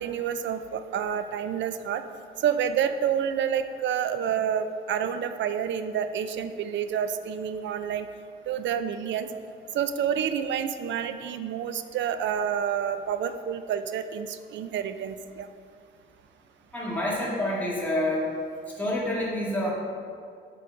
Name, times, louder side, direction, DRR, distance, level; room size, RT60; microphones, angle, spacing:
voice 1, 0.0-2.0 2.4-8.1 8.5-9.3 9.7-15.5, right 8 dB, 65° right, 10 dB, 0.5 m, -28 dB
voice 2, 16.7-18.3 18.8-19.7, left 1 dB, 10° left, -6 dB, 1.9 m, -27 dB
7.6 x 4.0 x 5.8 m, 2.3 s
cardioid pair, 90°, 20 cm